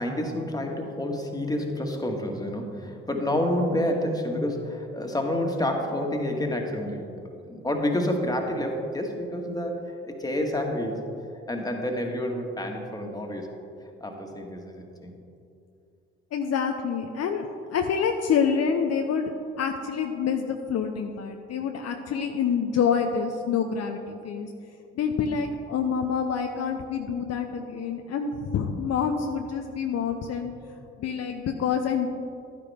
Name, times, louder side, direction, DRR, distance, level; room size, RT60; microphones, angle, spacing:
voice 1, 0.0-7.1 7.5-11.0 11.5-13.5 14.0-15.1 30.2-30.3, left 1 dB, 10° left, 2 dB, 1.8 m, -29 dB
voice 2, 16.3-24.5 25.0-30.5 31.0-32.1, left 6 dB, 55° left, 4 dB, 0.7 m, -27 dB
11.5 x 9.8 x 3.6 m, 2.6 s
hypercardioid pair, 50°, 31 cm